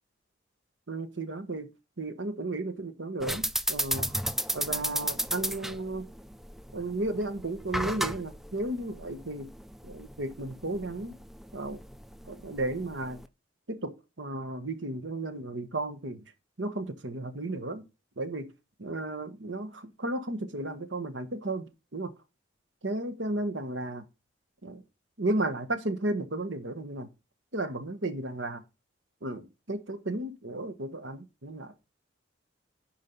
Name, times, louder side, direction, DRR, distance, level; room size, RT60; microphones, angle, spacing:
voice 1, 0.9-1.7 2.0-4.1 4.5-6.1 6.7-9.5 9.8-11.2 11.5-11.8 12.2-13.2 13.7-16.2 16.6-17.8 18.2-18.5 18.8-22.1 22.8-24.0 24.6-24.8 25.2-27.1 27.5-28.6 29.2-31.7, right 2 dB, 75° right, 1.4 m, -34 dB
sound 1, 3.2-13.3, equal, ahead, 0.4 m, -34 dB
10.5 x 4.7 x 5.5 m
head